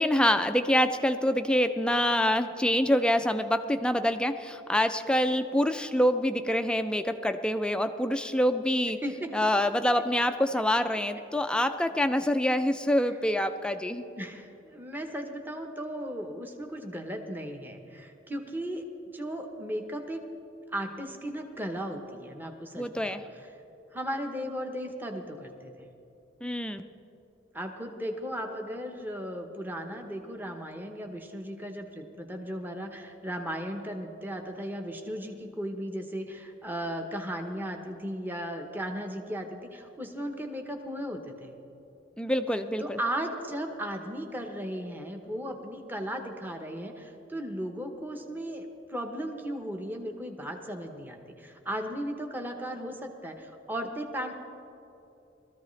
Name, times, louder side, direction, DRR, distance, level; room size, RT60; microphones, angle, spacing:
voice 1, 0.0-9.0 9.3-14.1 22.8-23.2 26.4-26.9 42.2-43.0, left 1 dB, 5° left, 9 dB, 0.3 m, -26 dB
voice 2, 9.0-9.4 14.2-18.8 19.1-20.2 20.7-23.2 23.9-25.9 27.5-41.5 42.8-54.3, equal, 10° right, 3 dB, 0.8 m, -36 dB
20.0 x 14.0 x 3.2 m, 2.9 s
head